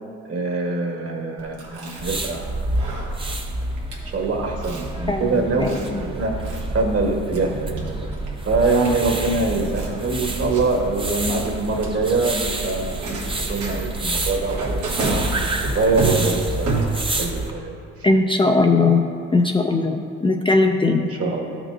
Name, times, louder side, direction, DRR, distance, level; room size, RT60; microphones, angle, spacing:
voice 1, 0.2-2.6 4.0-5.7 6.0-6.3 6.7-7.8 8.5-15.2 15.7-17.7 20.9-21.6, right 3 dB, 50° right, 1 dB, 1.5 m, -24 dB
Chewing mastication, 1.4-17.3, right 3 dB, 90° right, 1.5 m, -31 dB
sound 1, 2.0-17.5, right 2 dB, 15° right, 0.7 m, -28 dB
voice 2, 5.1-6.0 18.0-19.0 19.3-21.1, left 3 dB, 15° left, 3 dB, 0.4 m, -19 dB
12.5 x 6.0 x 2.6 m, 2.6 s
cardioid pair, 90°, 30 cm